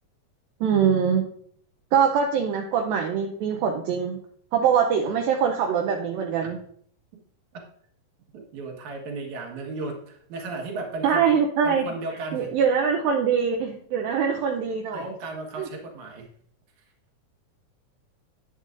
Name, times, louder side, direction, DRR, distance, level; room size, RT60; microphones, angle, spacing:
voice 1, 0.6-1.2 1.9-4.2 4.5-6.6 11.0-11.8 12.3-15.0 15.6-15.7, right 7 dB, 80° right, 2 dB, 2.4 m, -23 dB
voice 2, 8.3-11.2 11.6-12.5 14.9-16.3, right 3 dB, 60° right, 0 dB, 2.6 m, -35 dB
10.0 x 9.0 x 2.5 m, 0.63 s
omnidirectional pair, 4.3 m